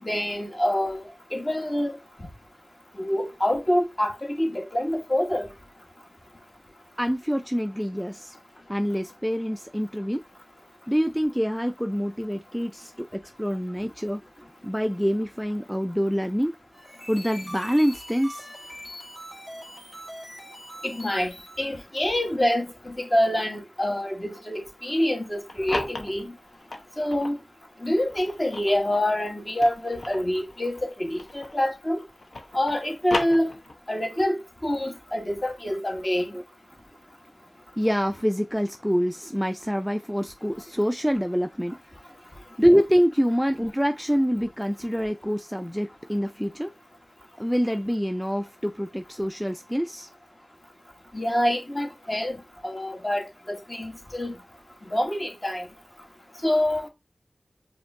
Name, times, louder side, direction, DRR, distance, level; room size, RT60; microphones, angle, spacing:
voice 1, 0.0-1.0 1.3-1.9 2.9-5.5 20.8-26.3 27.0-27.4 27.8-32.0 32.5-33.5 33.9-36.3 51.1-54.3 54.9-55.7 56.4-56.9, left 1 dB, 30° left, 1.3 m, -26 dB
voice 2, 7.0-8.4 8.7-10.2 10.9-14.2 14.6-16.5 17.1-18.5 36.3-36.4 37.8-41.8 42.6-46.7 47.4-50.1, equal, ahead, 0.3 m, -25 dB
sound 1, 16.7-21.8, equal, 45° left, 1.6 m, -42 dB
sound 2, 25.3-27.4 28.0-31.7 32.0-34.0, left 2 dB, 75° left, 0.8 m, -36 dB
5.2 x 2.5 x 2.6 m
cardioid pair, 40°, 0 cm